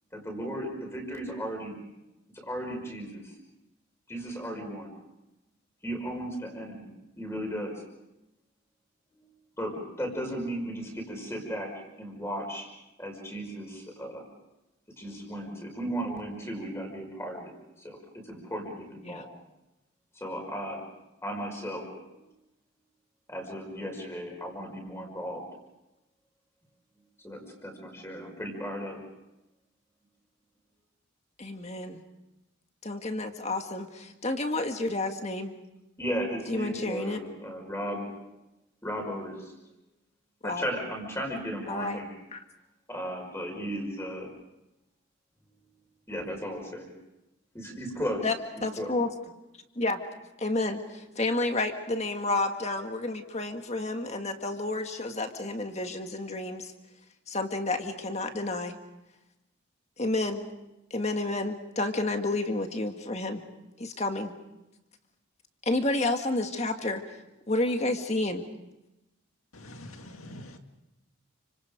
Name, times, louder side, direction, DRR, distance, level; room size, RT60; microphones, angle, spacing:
voice 1, 0.1-1.8 2.3-3.3 4.1-4.9 5.8-6.9 7.2-7.8 9.1-9.3 9.6-11.7 12.0-12.7 13.0-14.2 15.0-17.5 17.8-19.3 20.1-20.8 21.2-21.9 22.1-22.2 23.3-25.4 27.2-29.0 36.0-38.1 38.8-39.5 40.4-42.2 42.9-44.3 46.1-46.9 47.5-48.3 48.8-48.9, equal, 10° left, 2 dB, 5.4 m, -35 dB
voice 2, 31.4-32.0 32.8-35.5 36.5-37.2 40.4-40.6 41.7-42.0 42.3-42.4 48.2-48.3 48.6-49.1 49.8-50.0 50.4-56.7 57.3-58.7 60.0-60.5 60.9-63.4 63.8-64.3 65.6-67.0 67.5-68.4, left 2 dB, 30° left, 6 dB, 1.7 m, -30 dB
voice 3, 69.5-70.6, left 1 dB, 85° left, 5 dB, 2.2 m, -45 dB
30.0 x 26.0 x 5.2 m, 0.96 s
head